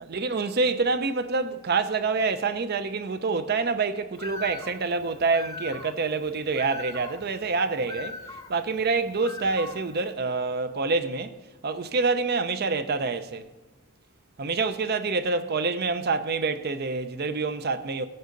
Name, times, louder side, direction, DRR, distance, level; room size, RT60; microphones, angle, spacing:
voice 1, 0.1-8.2 8.5-11.3 11.6-13.5 14.4-18.1, right 4 dB, 45° right, 0.6 m, -27 dB
Bird, 4.1-10.1, left 3 dB, 15° left, 0.8 m, -41 dB
17.5 x 7.8 x 3.9 m
head